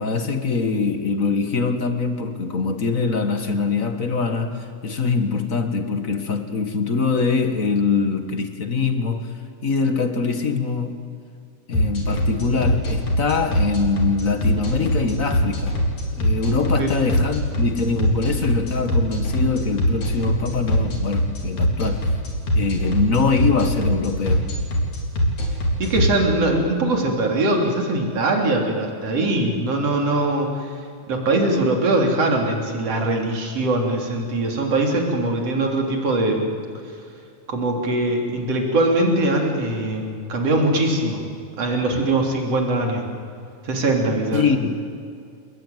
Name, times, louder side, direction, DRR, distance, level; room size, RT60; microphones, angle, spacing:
voice 1, 0.0-9.4 9.6-11.1 11.7-15.8 16.1-22.1 22.5-24.5 44.3-44.8, left 4 dB, 35° left, 7 dB, 1.5 m, -23 dB
sound 1, 11.7-26.0, equal, 75° left, 5.3 m, -21 dB
voice 2, 25.8-30.7 31.1-36.5 37.5-41.3 41.6-43.0 43.6-44.4, right 2 dB, 55° right, 1 dB, 4.3 m, -21 dB
29.0 x 20.5 x 9.4 m, 2.4 s
omnidirectional pair, 3.4 m